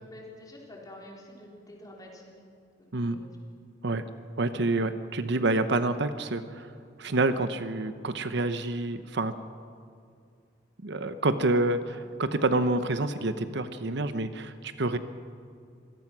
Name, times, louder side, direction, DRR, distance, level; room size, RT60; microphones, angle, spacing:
voice 1, 0.0-2.4 2.8-3.4 11.9-12.1 12.8-12.9, left 1 dB, 20° left, -1 dB, 4.1 m, -48 dB
voice 2, 4.4-6.7 7.0-9.3 10.8-15.0, right 2 dB, 65° right, 11 dB, 0.9 m, -28 dB
25.5 x 17.5 x 6.1 m, 2.3 s
head